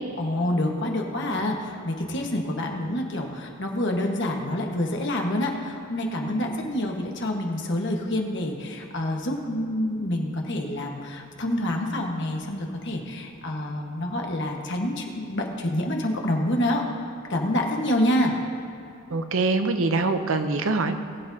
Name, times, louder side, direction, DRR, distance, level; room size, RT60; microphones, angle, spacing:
voice 1, 0.2-16.8 17.3-18.3, left 1 dB, 60° left, 1 dB, 1.4 m, -27 dB
voice 2, 19.1-21.0, right 3 dB, 75° right, 8 dB, 0.7 m, -24 dB
20.0 x 8.8 x 2.8 m, 2.6 s
head